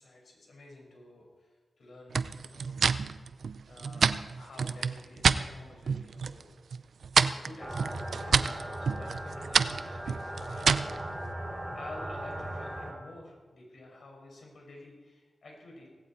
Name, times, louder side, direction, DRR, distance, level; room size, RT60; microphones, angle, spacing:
voice 1, 0.0-2.9 3.7-6.9 7.2-15.9, left 2 dB, 65° left, 0 dB, 5.6 m, -51 dB
sound 1, 2.1-5.4 5.8-6.4 6.7-11.0, right 5 dB, 70° right, 0.5 m, -28 dB
sound 2, 7.6-12.9, right 1 dB, 5° right, 2.5 m, -38 dB
17.5 x 16.5 x 4.4 m, 1.4 s
wide cardioid pair, 100°, 0 cm